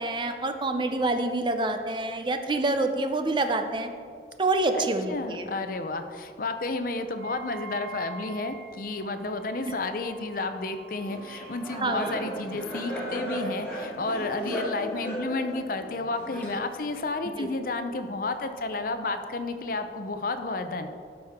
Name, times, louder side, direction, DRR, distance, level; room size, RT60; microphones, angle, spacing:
voice 1, 0.0-3.9 4.4-5.5 9.6-9.7 11.7-12.2 17.4-17.5, right 2 dB, 25° right, 7 dB, 0.5 m, -27 dB
voice 2, 4.7-20.9, left 3 dB, 50° left, 8 dB, 0.6 m, -31 dB
Wind instrument woodwind instrument, 7.1-13.0, right 5 dB, 80° right, 1.0 m, -47 dB
Laughter, 11.1-16.9, equal, 10° left, 2.1 m, -35 dB
12.5 x 6.3 x 3.6 m, 2.2 s
head